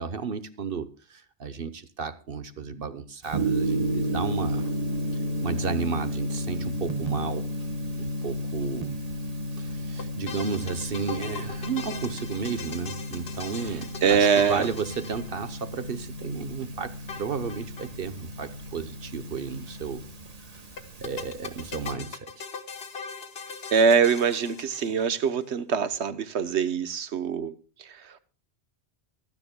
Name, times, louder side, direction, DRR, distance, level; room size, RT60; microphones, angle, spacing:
voice 1, 0.0-4.7 5.4-7.5 7.9-9.0 9.6-20.0 21.0-22.4, right 5 dB, 60° right, 1.1 m, -33 dB
Gong, 3.3-21.9, equal, 35° right, 1.3 m, -33 dB
sound 1, 10.0-15.8 17.1-17.9 18.2-18.3 18.5-18.6 20.8-25.3, left 5 dB, 65° left, 1.3 m, -40 dB
voice 2, 14.0-14.7 23.7-28.2, right 6 dB, 80° right, 1.2 m, -24 dB
23.5 x 9.7 x 2.2 m
omnidirectional pair, 1.1 m